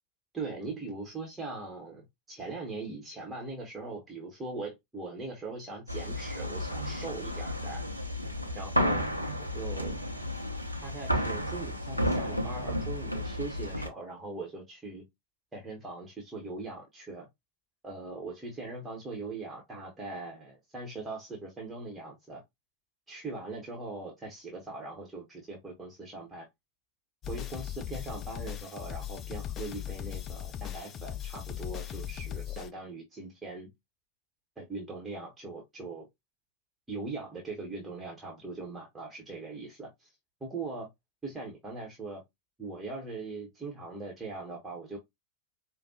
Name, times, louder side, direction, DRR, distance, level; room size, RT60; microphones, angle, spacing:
voice 1, 0.3-8.1 8.5-9.0 9.4-10.0 10.8-15.0 15.5-17.3 17.8-22.4 23.1-26.5 27.3-33.7 34.6-36.1 36.9-40.1 40.4-40.9 41.2-42.2 42.6-45.0, right 3 dB, 15° right, 1.1 m, -40 dB
sound 1, 5.9-13.9, equal, 90° right, 0.7 m, -32 dB
sound 2, 27.2-32.7, left 11 dB, 30° left, 0.4 m, -38 dB
5.1 x 2.2 x 2.7 m
figure-of-eight pair, 90°, 0 cm